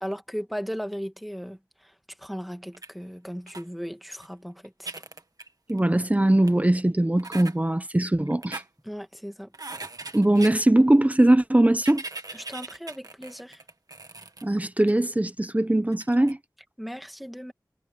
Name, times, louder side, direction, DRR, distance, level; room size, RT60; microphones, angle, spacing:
voice 1, 0.0-4.9 8.8-9.5 12.3-13.6 16.8-17.5, equal, ahead, 2.2 m, -36 dB
sound 1, 2.7-2.9 3.5-3.6 4.2-4.3 4.6-5.9 6.5-6.6 7.2-7.5 8.3-8.7 9.5-10.6 11.7-14.4 14.9-15.0 15.9-16.3, right 3 dB, 55° right, 1.8 m, -39 dB
voice 2, 5.7-8.6 10.1-12.0 14.4-16.4, right 1 dB, 20° right, 1.0 m, -21 dB
wide cardioid pair, 70°, 7 cm